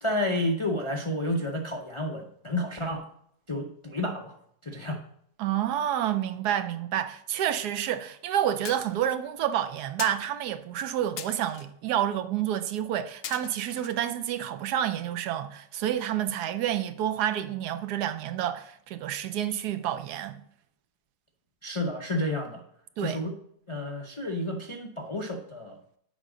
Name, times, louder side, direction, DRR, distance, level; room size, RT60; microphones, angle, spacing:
voice 1, 0.0-3.1 3.5-4.4 4.6-5.0 21.6-22.6 23.0-23.4 23.7-25.8, left 1 dB, 45° left, 0.4 m, -30 dB
voice 2, 5.4-20.4 23.0-23.2, right 10 dB, 85° right, 1.2 m, -29 dB
sound 1, 8.6-9.0 10.0-10.2 11.2-11.7 12.8-12.9 13.2-13.9, left 9 dB, 70° left, 1.0 m, -40 dB
7.3 x 5.2 x 4.9 m
omnidirectional pair, 1.7 m